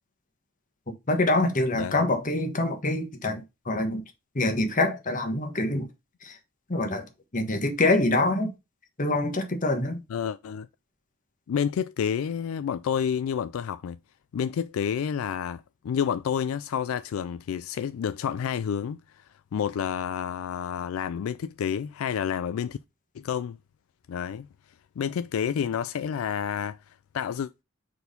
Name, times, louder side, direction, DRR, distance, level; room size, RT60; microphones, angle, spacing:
voice 1, 1.1-3.4 3.7-4.0 4.3-5.9 6.2-6.3 6.7-7.0 7.3-8.5 9.0-10.0, left 2 dB, 40° left, 1.3 m, -25 dB
voice 2, 10.1-10.7 11.5-14.0 14.3-19.2 19.5-22.8 23.2-23.6 24.1-24.5 25.0-26.8 27.1-27.5, left 8 dB, 80° left, 0.3 m, -29 dB
4.6 x 4.2 x 5.1 m
head